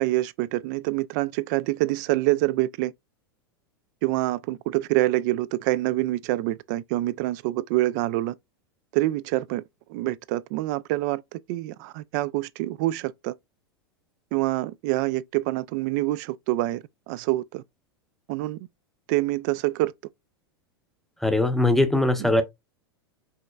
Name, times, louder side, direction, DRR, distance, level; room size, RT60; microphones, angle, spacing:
voice 1, 0.0-2.9 4.0-8.3 8.9-9.6 9.9-13.3 14.3-17.6 18.3-18.6 19.1-19.9, right 17 dB, 50° right, 0.4 m, -26 dB
voice 2, 21.2-22.4, left 1 dB, ahead, 0.7 m, -21 dB
5.5 x 2.9 x 2.3 m
figure-of-eight pair, 95°, 13 cm